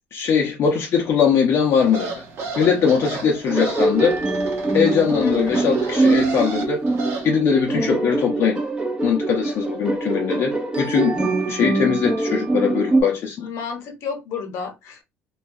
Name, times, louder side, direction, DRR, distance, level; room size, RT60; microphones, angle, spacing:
voice 1, 0.1-2.2 2.6-4.2 4.7-6.9 7.2-8.6 9.0-13.5, left 7 dB, 55° left, 0.5 m, -21 dB
sound 1, 1.8-7.3, right 3 dB, 60° right, 0.9 m, -32 dB
sound 2, 3.4-13.0, right 2 dB, 20° right, 0.6 m, -23 dB
voice 2, 5.2-5.7 13.4-15.0, left 6 dB, 70° left, 0.9 m, -31 dB
2.3 x 2.2 x 2.6 m
cardioid pair, 100°, 5 cm